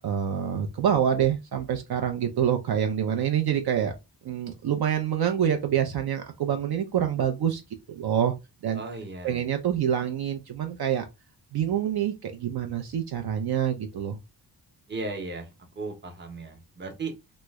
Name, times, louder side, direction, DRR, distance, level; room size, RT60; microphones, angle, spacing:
voice 1, 0.0-3.9 4.2-7.6 7.9-8.3 8.6-8.8 9.2-11.0 11.5-14.2, right 9 dB, 65° right, 0.5 m, -26 dB
voice 2, 8.7-9.4 14.9-17.1, right 3 dB, 25° right, 0.8 m, -36 dB
3.0 x 2.1 x 3.4 m
wide cardioid pair, 150°, 41 cm